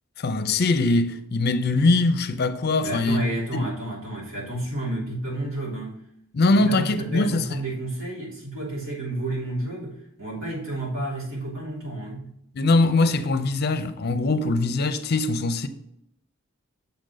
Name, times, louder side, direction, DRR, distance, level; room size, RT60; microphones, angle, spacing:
voice 1, 0.2-3.2 3.5-3.7 6.3-7.5 12.5-15.7, left 2 dB, 50° left, 0.5 m, -22 dB
voice 2, 2.8-6.0 6.5-12.3, right 1 dB, 75° right, 3.3 m, -31 dB
7.1 x 3.9 x 6.3 m
head